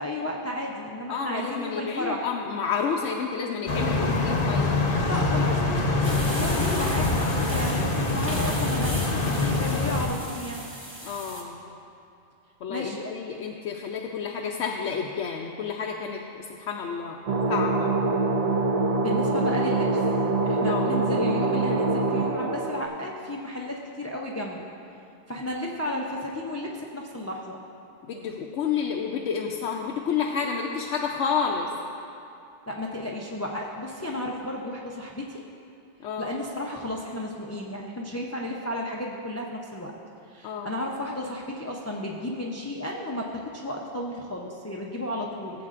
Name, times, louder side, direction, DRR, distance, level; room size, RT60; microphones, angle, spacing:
voice 1, 0.0-2.3 5.0-10.6 12.7-13.1 18.9-20.1 20.4-24.7 25.3-27.6 32.7-35.4 36.2-39.9 40.3-45.7, left 1 dB, 20° left, -2 dB, 0.4 m, -33 dB
voice 2, 1.1-4.8 11.0-11.6 12.6-17.2 17.5-17.9 20.7-21.0 28.1-31.7 36.0-36.3 40.4-40.7, left 6 dB, 85° left, 0 dB, 0.9 m, -30 dB
sound 1, 3.7-10.1, left 2 dB, 55° left, 0.9 m, -25 dB
sound 2, 6.0-11.4, equal, 10° right, 1.1 m, -37 dB
sound 3, 17.3-22.9, right 3 dB, 60° right, 0.4 m, -24 dB
15.5 x 7.8 x 2.5 m, 2.7 s
omnidirectional pair, 1.2 m